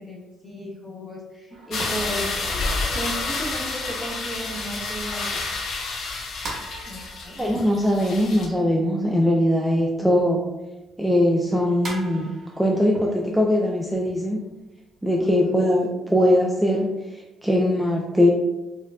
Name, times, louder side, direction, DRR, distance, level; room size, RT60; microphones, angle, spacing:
voice 1, 0.0-2.4 2.9-5.4 6.8-7.5 15.2-15.5, right 1 dB, 20° left, -3 dB, 1.1 m, -35 dB
sound 1, 1.5-10.1 10.4-15.9, right 2 dB, 45° right, 1.1 m, -42 dB
sound 2, 1.7-8.5, left 3 dB, 70° left, 0.5 m, -29 dB
voice 2, 7.4-10.4 11.0-12.3 12.6-14.5 15.0-18.3, left 1 dB, 5° right, -1 dB, 0.4 m, -21 dB
4.5 x 2.2 x 2.3 m, 1.0 s
cardioid pair, 90°, 0 cm